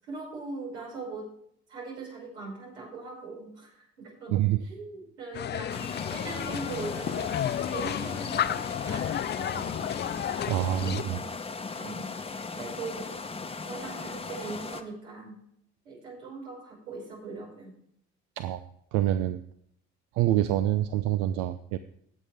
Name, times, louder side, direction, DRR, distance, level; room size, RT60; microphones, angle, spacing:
voice 1, 0.0-1.3 1.7-5.8 6.1-7.3 7.7-9.9 10.4-11.4 11.8-12.1 12.5-13.1 13.6-15.4 15.8-17.7, right 3 dB, 90° right, -4 dB, 5.6 m, -40 dB
sound 1, 5.3-11.0, left 10 dB, 35° left, 0.4 m, -32 dB
sound 2, 5.7-14.8, left 4 dB, 15° left, 1.0 m, -38 dB
voice 2, 10.5-11.2 18.4-18.6 18.9-19.4 20.1-21.8, right 13 dB, 70° right, 11 dB, 0.6 m, -26 dB
17.0 x 7.4 x 3.5 m, 0.69 s
hypercardioid pair, 65°, 33 cm